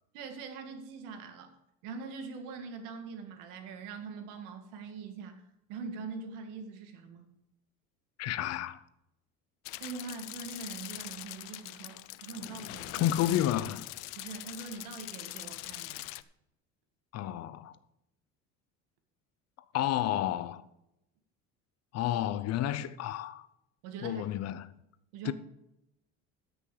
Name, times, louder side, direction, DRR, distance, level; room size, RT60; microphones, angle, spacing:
voice 1, 0.1-1.5 1.8-5.4 5.7-7.2 9.8-13.1 14.2-16.0 23.8-24.3 25.1-25.3, right 5 dB, 85° right, 2.0 m, -43 dB
voice 2, 8.2-8.8 13.0-13.9 17.1-17.8 19.7-20.6 21.9-23.5 24.0-24.7 25.2-25.3, left 12 dB, 55° left, 0.7 m, -31 dB
sound 1, 9.6-16.2, left 19 dB, 90° left, 0.6 m, -42 dB
14.0 x 6.2 x 5.0 m
cardioid pair, 135°, 31 cm